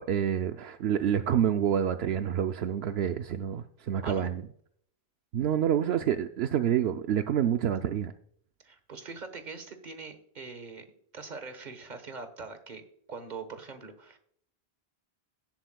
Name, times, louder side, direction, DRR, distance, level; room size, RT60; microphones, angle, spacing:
voice 1, 0.0-4.4 5.3-8.1, right 9 dB, 75° right, 8 dB, 0.8 m, -28 dB
voice 2, 8.6-10.8 11.1-12.8 13.1-14.2, right 4 dB, 45° right, 9 dB, 1.3 m, -42 dB
17.0 x 7.9 x 2.3 m, 0.65 s
omnidirectional pair, 1.1 m